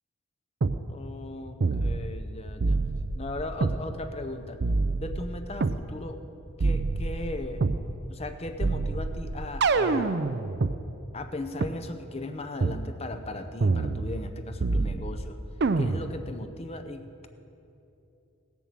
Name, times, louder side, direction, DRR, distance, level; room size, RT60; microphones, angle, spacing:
sound 1, 0.6-0.8 1.6-2.3 2.6-3.8 4.6-5.8 6.6-7.8 8.6-10.8 11.6-11.7 12.6-12.8 13.6-14.3 14.6-15.2 15.6-16.2, right 3 dB, 50° right, 0.5 m, -27 dB
voice 1, 0.9-2.8 3.1-4.6 5.0-6.2 6.6-7.7 8.1-10.2 11.1-15.4 15.8-17.3, left 2 dB, 30° left, 7 dB, 0.7 m, -37 dB
17.5 x 7.1 x 7.5 m, 2.9 s
head